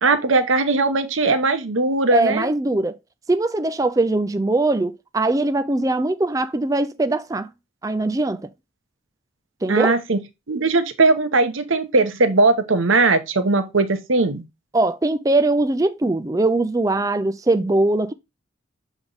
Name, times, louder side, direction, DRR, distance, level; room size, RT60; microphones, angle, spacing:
voice 1, 0.0-2.5 9.7-10.2 10.5-14.4, right 3 dB, 80° right, 1.0 m, -19 dB
voice 2, 2.1-3.0 3.3-7.5 7.8-8.4 9.6-10.0 14.7-18.1, right 2 dB, 15° right, 0.4 m, -21 dB
7.2 x 3.5 x 3.9 m
head